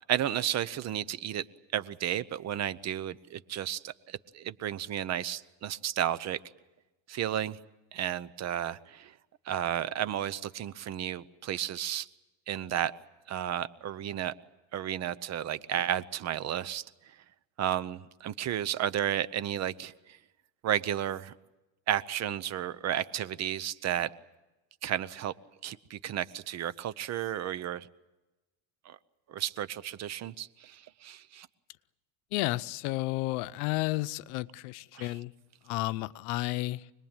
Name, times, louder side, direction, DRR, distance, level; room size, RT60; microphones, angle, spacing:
voice 1, 0.1-1.4 1.7-6.4 7.1-7.6 7.9-9.1 9.5-12.1 12.5-12.9 13.3-14.3 14.7-16.8 17.6-20.2 20.6-21.3 21.9-24.1 24.8-25.3 25.6-27.9 28.8-29.0 29.3-31.5 34.9-35.2, right 11 dB, 40° right, 0.9 m, -32 dB
voice 2, 32.3-35.3 35.7-36.8, left 19 dB, 80° left, 0.9 m, -32 dB
25.5 x 20.0 x 9.0 m
cardioid pair, 140°, 42 cm